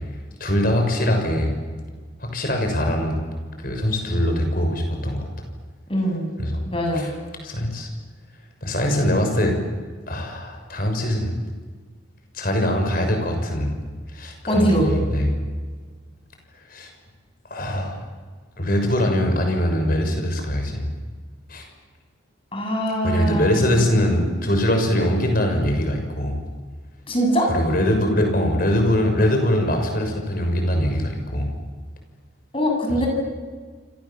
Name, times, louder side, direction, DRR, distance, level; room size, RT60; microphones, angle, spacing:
voice 1, 0.4-1.5 2.2-3.3 3.6-5.3 6.4-6.6 6.9-7.1 7.4-7.9 8.6-9.6 10.1-11.3 12.3-13.7 14.1-15.3 16.7-16.9 17.5-18.0 18.6-20.8 21.5-21.7 23.0-26.4 27.5-31.5 32.9-33.0, left 1 dB, 45° left, 4 dB, 6.5 m, -22 dB
voice 2, 5.9-6.3 6.7-7.1 14.5-14.9 22.5-23.9 27.1-27.5 32.5-33.1, equal, 25° left, 2 dB, 7.6 m, -22 dB
28.0 x 27.0 x 7.5 m, 1.5 s
head